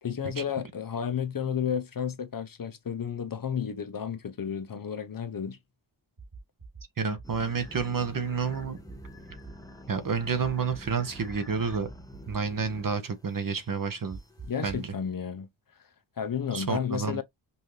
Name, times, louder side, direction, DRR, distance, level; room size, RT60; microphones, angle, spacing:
voice 1, 0.0-5.6 14.4-15.5 16.2-17.2, left 7 dB, 45° left, 0.7 m, -32 dB
sound 1, 6.2-6.8 7.2-7.8 8.6-9.5 10.4-11.4 11.7-12.4 14.1-14.9, right 4 dB, 85° right, 3.3 m, -45 dB
voice 2, 7.0-8.8 9.9-11.9 12.3-14.2 14.6-14.9 16.5-17.2, right 5 dB, 45° right, 0.9 m, -29 dB
sound 2, 7.2-14.9, equal, 10° left, 0.7 m, -48 dB
5.5 x 2.7 x 3.1 m
wide cardioid pair, 165°, 46 cm